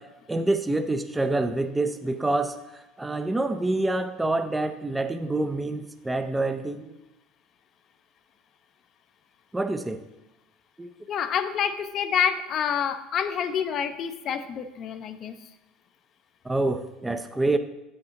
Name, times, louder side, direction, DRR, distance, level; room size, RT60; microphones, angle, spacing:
voice 1, 0.3-2.6 3.0-6.9 9.5-10.0 10.8-10.9 16.5-17.6, right 2 dB, 10° right, 8 dB, 0.4 m, -26 dB
voice 2, 11.1-15.4, left 8 dB, 45° left, 11 dB, 0.5 m, -27 dB
8.0 x 6.4 x 2.9 m, 0.98 s
supercardioid pair, 110°, 0 cm